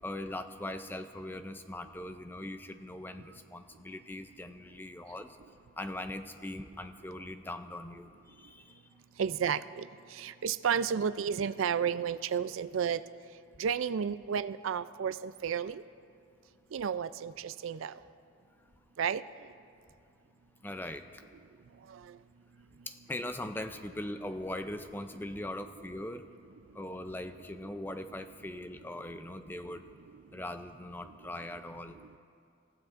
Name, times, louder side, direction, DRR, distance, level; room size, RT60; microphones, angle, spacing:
voice 1, 0.0-5.4 5.8-8.8 20.6-21.2 22.9-26.3 26.7-29.8 30.3-32.0, left 1 dB, 10° left, 9 dB, 0.4 m, -41 dB
voice 2, 9.2-9.8 10.2-13.0 13.6-15.8 16.7-17.9 19.0-19.2, right 7 dB, 80° right, 15 dB, 0.4 m, -32 dB
27.5 x 16.0 x 2.5 m, 2.4 s
head